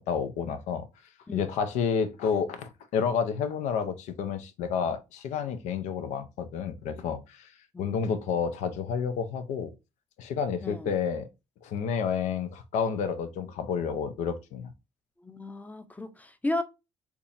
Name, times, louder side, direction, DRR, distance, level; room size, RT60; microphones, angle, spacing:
voice 1, 0.1-0.9 1.3-7.5 7.8-9.7 10.2-11.3 11.6-14.7, left 6 dB, 80° left, 0.6 m, -30 dB
voice 2, 15.2-16.6, left 2 dB, 15° left, 0.6 m, -34 dB
3.6 x 2.9 x 2.5 m
cardioid pair, 85°, 12 cm